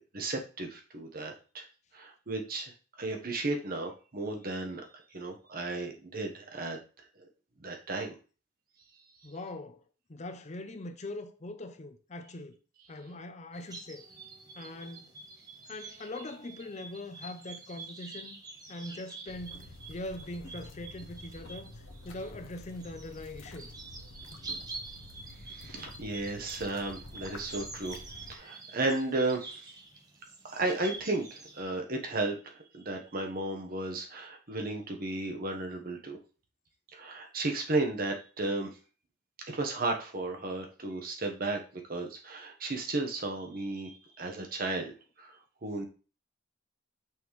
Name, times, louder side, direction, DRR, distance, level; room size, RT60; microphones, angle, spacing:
voice 1, 0.1-1.6 1.9-2.7 3.0-4.8 5.1-6.8 7.2-7.3 7.6-8.1 25.4-28.0 28.3-29.6 30.4-32.4 32.7-36.2 36.9-38.7 39.5-41.6 41.9-44.9 45.2-45.3 45.6-45.9, right 2 dB, 50° right, 1.1 m, -34 dB
voice 2, 9.2-9.8 10.1-12.6 12.9-14.1 14.6-15.1 15.7-18.4 18.7-21.7 22.0-23.7 24.4-24.7, left 2 dB, 35° left, 0.6 m, -42 dB
sound 1, 13.5-31.6, right 3 dB, 20° right, 1.0 m, -47 dB
sound 2, 19.3-28.4, left 2 dB, 85° left, 0.9 m, -49 dB
6.1 x 5.3 x 3.1 m
head